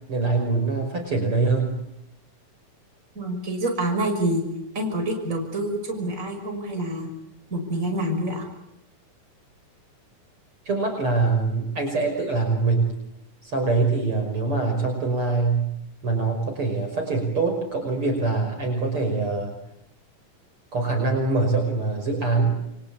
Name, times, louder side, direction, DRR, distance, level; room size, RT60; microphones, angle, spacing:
voice 1, 0.1-1.8 10.7-12.9 13.4-15.6 16.0-19.6 20.7-22.6, right 3 dB, 40° right, 4 dB, 6.2 m, -24 dB
voice 2, 3.1-4.4 4.7-7.1 7.5-8.4, right 1 dB, 20° right, 3 dB, 6.3 m, -27 dB
29.0 x 24.0 x 8.5 m, 0.82 s
omnidirectional pair, 3.8 m